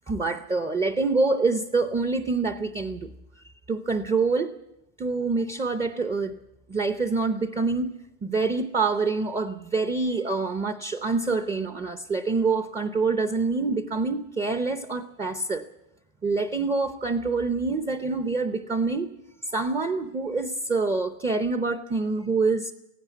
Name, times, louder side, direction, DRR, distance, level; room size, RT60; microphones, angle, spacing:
voice 1, 0.1-3.1 3.7-4.5 5.0-6.4 6.7-7.9 8.2-15.6 16.2-19.1 19.5-22.7, right 3 dB, 10° right, 9 dB, 0.7 m, -26 dB
17.5 x 16.5 x 9.1 m, 0.90 s
supercardioid pair, 140°, 46 cm